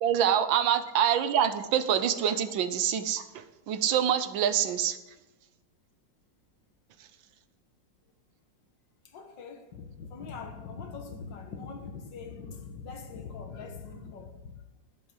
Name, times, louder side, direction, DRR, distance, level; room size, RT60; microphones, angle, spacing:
voice 1, 0.0-5.0, right 9 dB, 85° right, 1.6 m, -26 dB
voice 2, 9.1-14.6, left 5 dB, 75° left, 1.9 m, -42 dB
12.0 x 10.5 x 5.0 m
omnidirectional pair, 2.0 m